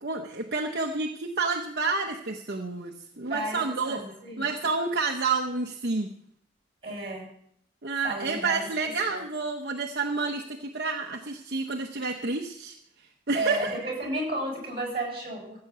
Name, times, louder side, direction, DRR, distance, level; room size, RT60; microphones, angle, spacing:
voice 1, 0.0-4.0 4.4-6.1 7.8-12.7 13.3-13.7, right 4 dB, 60° right, 2 dB, 1.0 m, -29 dB
voice 2, 3.3-4.5 6.8-7.3 8.0-9.2 13.3-15.6, right 1 dB, 30° right, 0 dB, 6.3 m, -33 dB
15.0 x 5.7 x 8.1 m, 0.67 s
head